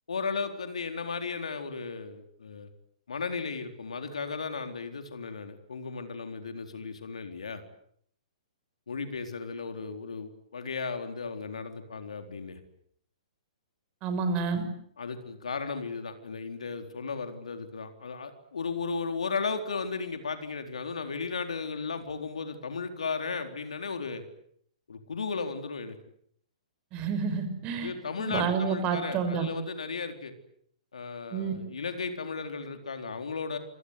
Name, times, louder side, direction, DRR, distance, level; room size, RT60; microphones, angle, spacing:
voice 1, 0.1-2.7 3.1-7.6 8.9-12.6 15.0-24.2 24.9-26.0 27.8-30.3 30.9-33.6, left 4 dB, 70° left, 7 dB, 4.1 m, -35 dB
voice 2, 14.0-14.6 26.9-27.9 28.2-29.5 31.3-31.5, right 5 dB, 30° right, 9 dB, 6.2 m, -29 dB
28.0 x 24.5 x 8.3 m, 0.67 s
figure-of-eight pair, 115°, 4 cm